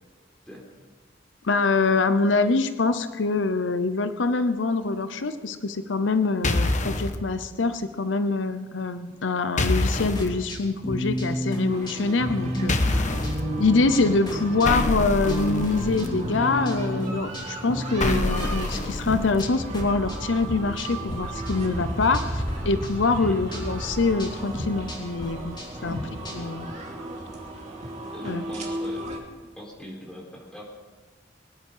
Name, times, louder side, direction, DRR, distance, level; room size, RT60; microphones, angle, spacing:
voice 1, 1.4-13.1 13.6-25.6 25.8-26.0 26.3-26.7 28.2-28.5, left 3 dB, 80° left, 10 dB, 0.8 m, -25 dB
sound 1, 6.4-7.2 9.6-10.3 12.7-13.4 14.7-16.1 18.0-19.4, left 2 dB, 40° left, 1.1 m, -26 dB
sound 2, 10.2-21.2 21.5-22.5 22.8-26.6, equal, 25° left, 3.3 m, -32 dB
sound 3, 11.7-29.2, right 1 dB, 40° right, 2.9 m, -35 dB
voice 2, 28.1-29.1 29.6-30.8, equal, 5° left, -2 dB, 4.0 m, -41 dB
23.0 x 10.0 x 5.6 m, 1.4 s
head